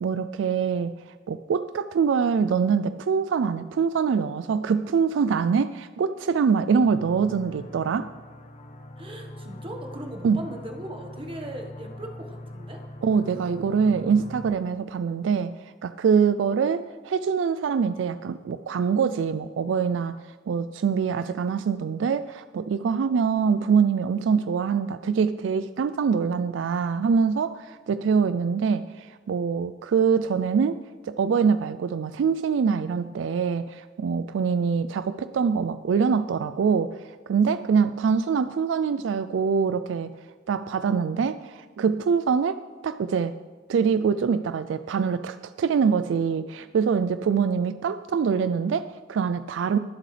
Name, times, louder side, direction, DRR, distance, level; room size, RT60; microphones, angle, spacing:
voice 1, 0.0-8.1 10.2-10.4 13.0-30.8 31.0-40.1 40.5-43.3 43.7-49.8, right 6 dB, 70° right, 13 dB, 0.3 m, -24 dB
sound 1, 6.7-14.5, left 1 dB, 35° left, 0.7 m, -42 dB
voice 2, 9.0-12.8, right 1 dB, 30° right, 2 dB, 1.4 m, -38 dB
22.5 x 7.7 x 3.3 m, 1.5 s
head